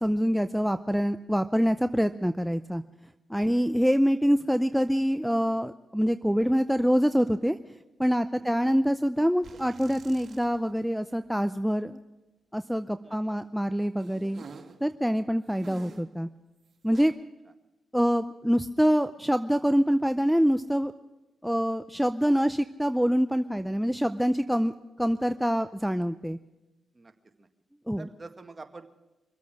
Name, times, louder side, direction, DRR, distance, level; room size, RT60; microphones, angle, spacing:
voice 1, 0.0-2.8 3.3-7.6 8.0-12.0 12.5-14.4 14.8-16.3 16.8-17.1 17.9-20.9 21.4-24.7 25.0-26.4 27.9-28.1, equal, ahead, 10 dB, 0.6 m, -25 dB
sound 1, 9.4-10.8 11.1-11.2 14.0-14.8 15.6-16.2 16.9-17.1, right 4 dB, 60° right, 2.2 m, -48 dB
voice 2, 13.0-13.4 26.9-27.1 27.4-27.5 28.0-28.9, right 3 dB, 30° right, 5 dB, 1.9 m, -47 dB
24.5 x 8.4 x 6.3 m, 1.0 s
supercardioid pair, 50°, 0 cm